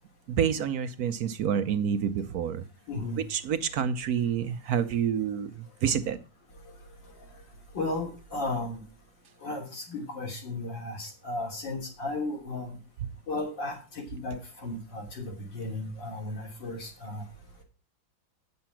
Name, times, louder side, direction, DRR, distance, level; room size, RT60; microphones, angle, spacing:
voice 1, 0.3-2.7 3.2-6.2, right 8 dB, 70° right, 10 dB, 0.9 m, -28 dB
voice 2, 2.9-3.2 7.7-8.8 9.4-12.7 13.3-17.2, left 2 dB, 60° left, 1 dB, 3.5 m, -34 dB
9.6 x 6.9 x 5.7 m, 0.33 s
omnidirectional pair, 2.2 m